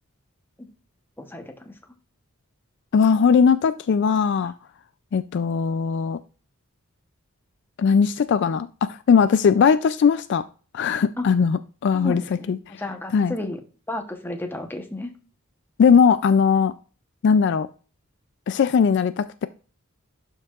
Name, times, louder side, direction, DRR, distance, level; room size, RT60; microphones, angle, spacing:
voice 1, 1.2-1.7 4.4-4.5 11.2-11.3 11.9-12.5 12.8-13.6 13.9-15.1, left 1 dB, 10° left, 5 dB, 0.9 m, -32 dB
voice 2, 2.9-4.5 5.1-6.2 7.8-10.4 10.7-12.2 12.5-12.6 13.1-13.3 15.8-16.7 17.2-17.7 18.5-19.5, left 6 dB, 55° left, 13 dB, 0.3 m, -19 dB
11.5 x 4.6 x 2.4 m, 0.36 s
head